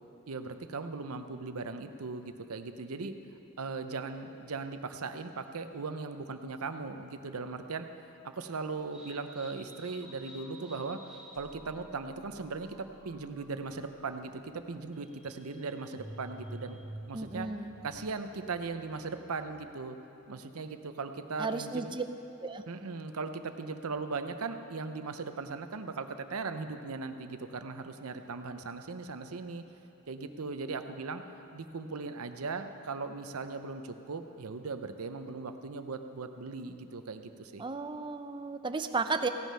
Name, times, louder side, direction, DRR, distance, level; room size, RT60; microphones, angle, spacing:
voice 1, 0.3-3.1 3.6-7.9 8.2-11.0 11.4-16.8 17.1-17.5 17.8-20.0 20.3-21.9 22.7-29.6 30.1-31.2 31.5-37.6, right 4 dB, 85° right, 8 dB, 0.7 m, -38 dB
sound 1, 8.9-19.5, right 1 dB, 5° right, 1.6 m, -51 dB
voice 2, 17.1-17.7 21.4-22.0 22.4-22.6 37.6-39.3, right 4 dB, 20° right, 8 dB, 0.5 m, -34 dB
16.5 x 9.3 x 5.6 m, 2.9 s
head